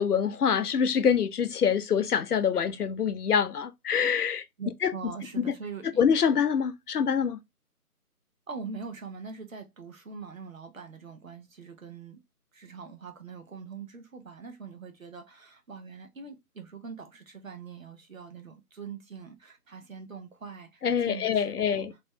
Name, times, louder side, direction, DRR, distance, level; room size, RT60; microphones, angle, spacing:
voice 1, 0.0-4.4 4.8-4.9 5.4-5.5 6.0-7.4 20.8-21.9, left 7 dB, 75° left, 0.6 m, -25 dB
voice 2, 4.6-6.0 8.5-12.2 12.5-21.8, right 5 dB, 60° right, 0.9 m, -43 dB
3.0 x 2.3 x 3.4 m
figure-of-eight pair, 180°, 46 cm